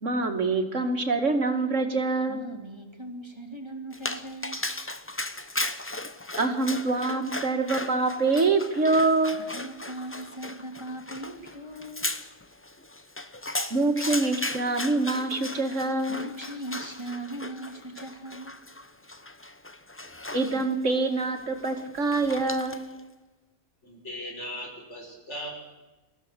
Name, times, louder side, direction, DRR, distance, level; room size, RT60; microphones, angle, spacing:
voice 1, 0.0-2.5 6.4-9.4 13.7-16.3 20.3-22.9, right 3 dB, 85° right, 5 dB, 2.6 m, -25 dB
voice 2, 2.3-4.6 9.3-12.1 16.1-18.6, right 1 dB, 20° right, 4 dB, 2.6 m, -39 dB
Dog, 3.9-23.0, left 2 dB, 10° left, 0.8 m, -37 dB
voice 3, 23.8-25.5, left 1 dB, 70° left, 1 dB, 6.0 m, -38 dB
24.5 x 15.5 x 8.3 m, 1.1 s
omnidirectional pair, 1.2 m